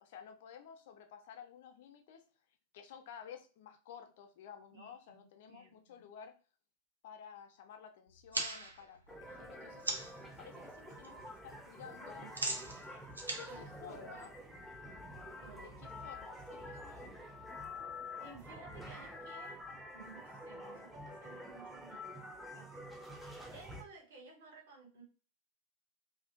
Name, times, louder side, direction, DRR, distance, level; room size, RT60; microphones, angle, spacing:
voice 1, 0.0-2.2 2.7-6.3 7.0-9.9 10.4-12.3 13.3-14.3 15.6-17.1, left 8 dB, 50° left, 5 dB, 0.4 m, -53 dB
voice 2, 4.7-6.1 12.2-12.6 13.5-14.2 15.4-15.8 16.2-16.3 18.2-22.8 23.5-25.0, right 3 dB, 55° right, -1 dB, 0.9 m, -56 dB
sound 1, 8.1-10.3 10.6-11.1 11.3-14.6, right 2 dB, 80° right, 0.5 m, -41 dB
sound 2, 9.1-23.8, left 1 dB, ahead, 0.5 m, -48 dB
2.4 x 2.4 x 2.5 m, 0.36 s
figure-of-eight pair, 90°, 0 cm